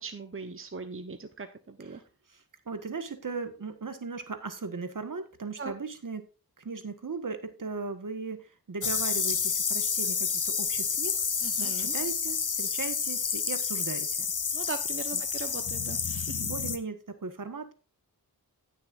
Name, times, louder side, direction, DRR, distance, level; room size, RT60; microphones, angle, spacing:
voice 1, 0.0-2.0 5.6-5.7 11.4-11.9 14.5-16.4, right 4 dB, 35° right, 8 dB, 0.9 m, -40 dB
voice 2, 2.3-6.3 6.6-11.2 11.6-14.3 15.1-15.2 16.4-17.7, right 4 dB, 60° right, 9 dB, 1.4 m, -38 dB
sound 1, 8.8-16.8, left 6 dB, 55° left, 1.0 m, -29 dB
16.5 x 6.7 x 2.5 m, 0.32 s
wide cardioid pair, 60°, 37 cm